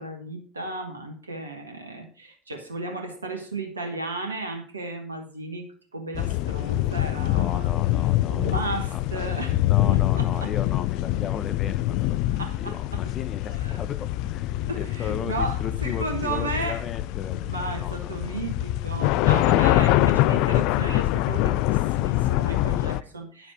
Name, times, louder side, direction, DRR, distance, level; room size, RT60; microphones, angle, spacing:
voice 1, 0.0-5.6 5.9-7.7 8.3-9.6 9.9-10.5 12.4-13.0 13.5-13.8 14.7-16.8 17.4-23.5, right 2 dB, 85° right, 5 dB, 1.1 m, -34 dB
sound 1, 6.1-23.0, left 15 dB, 60° left, 0.4 m, -24 dB
voice 2, 7.3-12.2 12.6-18.4, left 7 dB, 45° left, 10 dB, 1.0 m, -37 dB
10.0 x 7.2 x 4.8 m, 0.43 s
figure-of-eight pair, 60°, 0 cm